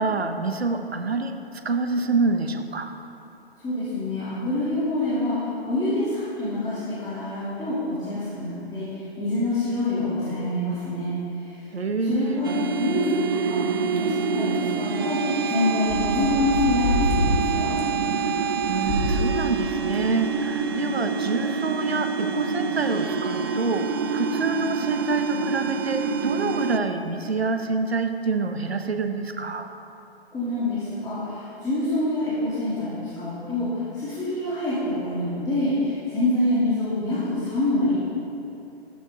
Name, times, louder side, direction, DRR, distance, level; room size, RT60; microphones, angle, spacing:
voice 1, 0.0-2.9 11.7-12.4 18.1-29.7, right 3 dB, 75° right, 7 dB, 1.2 m, -27 dB
voice 2, 3.6-11.6 12.1-17.8 30.3-38.0, left 2 dB, 10° left, -12 dB, 3.0 m, -26 dB
sound 1, 12.4-26.8, right 5 dB, 25° right, 0.3 m, -26 dB
sound 2, 14.0-14.1 14.6-14.7 15.5-15.6 15.9-17.4 17.8-17.9 18.6-19.4 19.9-20.0 20.6-20.7, equal, 50° left, 3.5 m, -26 dB
14.5 x 12.5 x 3.8 m, 2.8 s
figure-of-eight pair, 120°, 32 cm